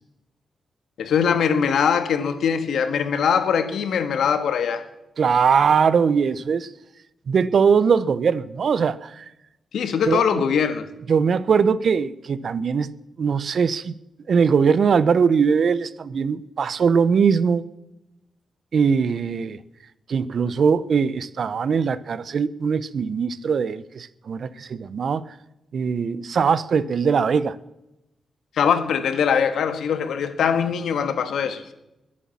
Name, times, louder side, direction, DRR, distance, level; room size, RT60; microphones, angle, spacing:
voice 1, 1.0-4.8 9.7-10.9 28.6-31.6, left 7 dB, 85° left, 9 dB, 1.6 m, -22 dB
voice 2, 5.2-6.7 7.3-9.3 10.1-10.5 11.1-13.9 14.3-17.6 18.7-19.6 20.1-25.2 25.7-27.6, right 6 dB, 50° right, 17 dB, 0.6 m, -21 dB
21.5 x 8.5 x 7.2 m, 0.93 s
wide cardioid pair, 160°, 0 cm